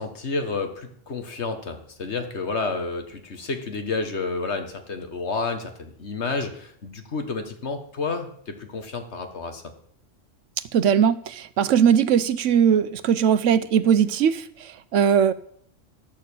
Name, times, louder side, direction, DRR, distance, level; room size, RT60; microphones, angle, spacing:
voice 1, 0.0-9.6, left 3 dB, 65° left, 6 dB, 1.8 m, -30 dB
voice 2, 10.7-15.3, right 8 dB, 80° right, 14 dB, 1.1 m, -20 dB
12.0 x 6.7 x 8.5 m, 0.65 s
omnidirectional pair, 1.3 m